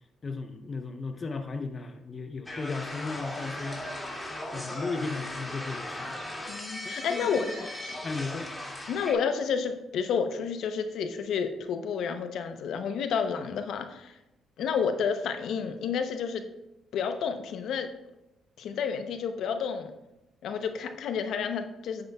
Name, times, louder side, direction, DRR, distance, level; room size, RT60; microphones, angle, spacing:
voice 1, 0.2-3.9 4.5-6.2 6.8-7.5 8.0-8.5, left 4 dB, 40° left, 7 dB, 0.7 m, -35 dB
sound 1, 2.5-9.1, left 1 dB, 10° left, 2.2 m, -38 dB
voice 2, 6.5-7.4 8.9-14.2 14.6-16.5 16.9-17.9 18.6-19.9 20.4-22.1, left 6 dB, 75° left, 8 dB, 0.7 m, -30 dB
9.5 x 7.7 x 2.3 m, 0.94 s
supercardioid pair, 65°, 0 cm